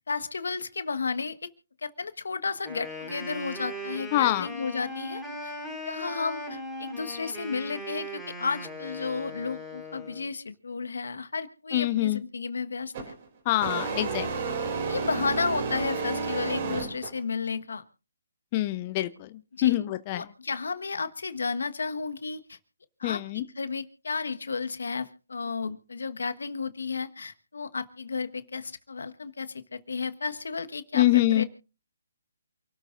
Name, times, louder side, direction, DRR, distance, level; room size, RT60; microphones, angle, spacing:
voice 1, 0.1-1.5 1.8-5.5 5.8-13.1 13.9-14.1 14.9-17.8 19.5-19.8 20.1-22.6 23.0-31.4, left 4 dB, 75° left, 10 dB, 1.4 m, -33 dB
Wind instrument woodwind instrument, 2.6-10.3, left 1 dB, 5° right, 4.9 m, -39 dB
voice 2, 4.1-4.5 11.7-12.2 13.5-14.3 18.5-19.1 19.6-20.2 23.0-23.4 30.9-31.4, left 15 dB, 30° left, 11 dB, 0.7 m, -24 dB
sound 1, 12.9-13.2 13.6-17.2, right 4 dB, 40° right, 4.3 m, -31 dB
28.0 x 13.0 x 2.6 m, 0.35 s
hypercardioid pair, 145°, 0 cm